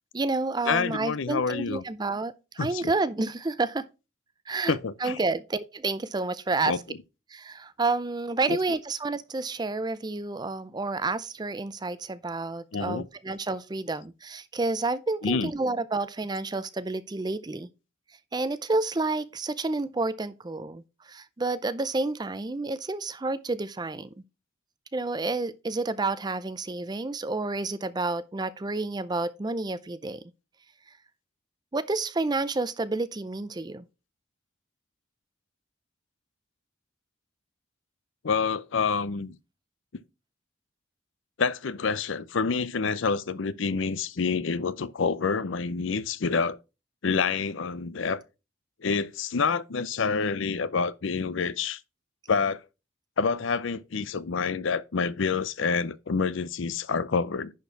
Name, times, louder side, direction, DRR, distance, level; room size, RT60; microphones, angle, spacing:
voice 1, 0.1-3.9 4.5-6.8 7.3-17.7 18.3-24.1 24.9-30.2 31.7-33.8, right 3 dB, 20° right, 0.4 m, -30 dB
voice 2, 0.7-1.8 2.6-2.9 4.7-5.2 6.7-6.8 8.5-8.6 12.7-13.0 15.2-15.5 38.2-39.4 41.4-46.6 47.0-48.2 48.8-51.8 52.3-52.6 53.2-57.5, left 5 dB, 65° left, 0.6 m, -27 dB
10.5 x 4.3 x 4.5 m
head